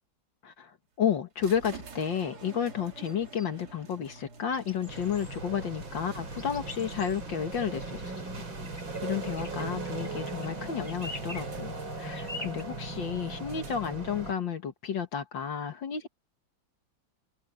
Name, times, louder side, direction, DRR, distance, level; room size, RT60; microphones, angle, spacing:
voice 1, 0.4-8.1 9.0-16.1, left 8 dB, 70° left, 2.2 m, -32 dB
sound 1, 1.4-14.2, right 4 dB, 55° right, 2.6 m, -49 dB
sound 2, 3.0-3.5 4.5-5.4 6.4-7.2 8.6-9.0 9.3-10.5 10.8-11.5 12.1-12.6, left 2 dB, 10° left, 2.7 m, -44 dB
sound 3, 4.9-14.3, right 3 dB, 75° right, 5.8 m, -38 dB
omnidirectional pair, 2.1 m